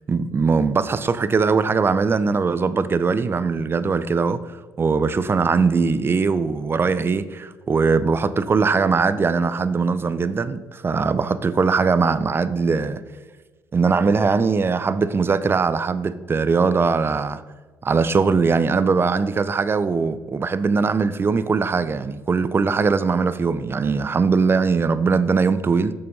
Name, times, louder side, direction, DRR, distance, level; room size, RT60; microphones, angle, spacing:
voice 1, 0.1-4.4 4.8-13.0 13.7-17.4 17.8-25.9, right 4 dB, 30° right, 0.5 m, -20 dB
6.7 x 5.5 x 5.3 m
supercardioid pair, 70°, 7 cm